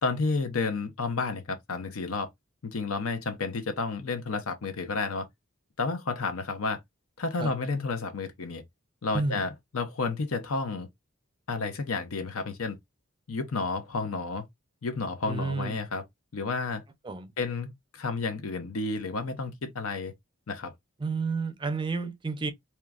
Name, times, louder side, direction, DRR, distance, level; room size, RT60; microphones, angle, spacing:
voice 1, 0.0-2.3 2.6-5.3 5.8-6.8 7.2-8.6 9.0-10.9 11.5-12.8 13.3-14.4 14.8-16.0 16.3-16.8 17.4-20.1 20.5-20.7, left 4 dB, 80° left, 0.7 m, -31 dB
voice 2, 9.1-9.4 15.3-15.8 17.0-17.3 21.0-22.5, right 3 dB, 25° right, 0.4 m, -31 dB
2.9 x 2.2 x 2.3 m
head